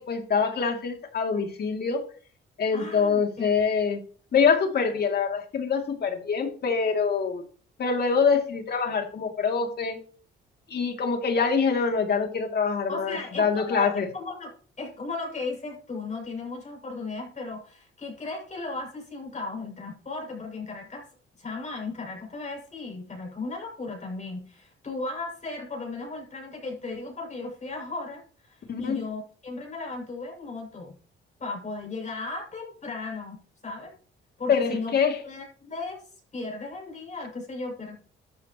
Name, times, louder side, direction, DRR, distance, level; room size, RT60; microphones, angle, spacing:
voice 1, 0.0-2.0 2.6-4.0 4.3-7.4 7.8-10.0 10.7-14.1 28.7-29.0 34.5-35.2, left 5 dB, 55° left, 3 dB, 2.9 m, -25 dB
voice 2, 2.7-3.5 12.9-21.1 21.4-30.9 31.4-33.9 34.4-35.0 35.2-36.0 36.3-37.9, left 3 dB, 35° left, 0 dB, 7.0 m, -36 dB
13.5 x 10.5 x 3.1 m, 0.43 s
cardioid pair, 90°, 20 cm